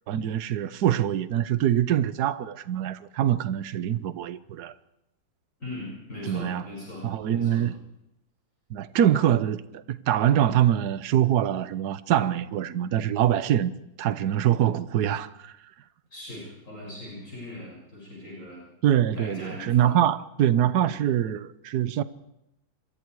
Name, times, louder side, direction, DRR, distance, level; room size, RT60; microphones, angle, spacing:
voice 1, 0.1-4.7 6.3-6.6 7.0-7.7 8.7-13.7 14.0-15.6 18.8-22.0, right 10 dB, 60° right, 1.4 m, -24 dB
voice 2, 5.6-7.7 16.1-18.6 19.1-20.0 20.8-21.0, left 1 dB, 40° left, 7.1 m, -40 dB
27.0 x 23.0 x 4.8 m
omnidirectional pair, 2.0 m